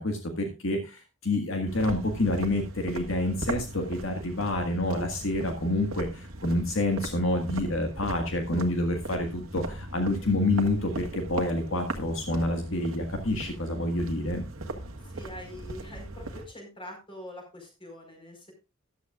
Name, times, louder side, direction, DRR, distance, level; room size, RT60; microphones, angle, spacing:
voice 1, 0.0-14.5, left 1 dB, 65° left, 4 dB, 1.7 m, -28 dB
sound 1, 1.7-16.4, right 2 dB, 85° right, 1.6 m, -39 dB
voice 2, 15.0-18.5, left 1 dB, 25° left, 2 dB, 4.7 m, -44 dB
14.5 x 11.5 x 2.4 m, 0.28 s
head